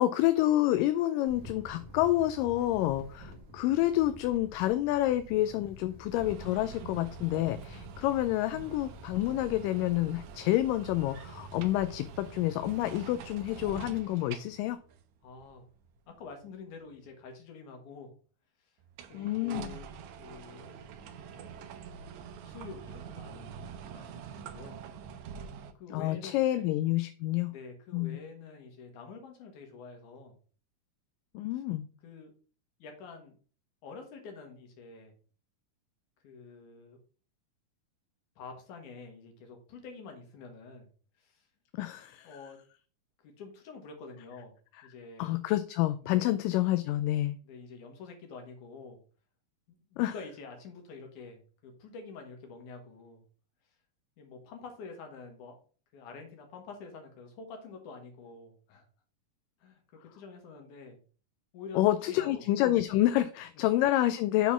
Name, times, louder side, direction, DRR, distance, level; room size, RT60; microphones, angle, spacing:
voice 1, 0.0-14.8 19.1-19.7 25.9-27.5 27.9-28.2 31.3-31.9 41.7-42.3 45.2-47.4 50.0-50.1 61.7-64.5, left 14 dB, 80° left, 11 dB, 2.1 m, -28 dB
Wind, 1.3-14.0, equal, 60° right, 0.8 m, -50 dB
sound 1, 6.1-16.4 18.8-25.7, right 7 dB, 75° right, 1.7 m, -46 dB
voice 2, 15.2-15.6 16.1-18.1 18.6-18.8 19.1-19.9 20.2-20.7 21.1-21.6 22.4-24.8 25.7-26.7 27.5-30.3 31.5-31.6 32.0-32.3 32.8-33.4 33.8-35.1 36.2-37.0 38.4-40.9 41.2-41.5 42.2-42.6 43.2-44.5 44.8-45.4 46.0-46.3 47.4-49.0 49.7-53.2 54.2-55.6 55.9-58.9 59.6-61.0 61.5-62.4, left 4 dB, 65° left, 3 dB, 2.9 m, -47 dB
7.0 x 4.1 x 5.6 m, 0.40 s
omnidirectional pair, 4.0 m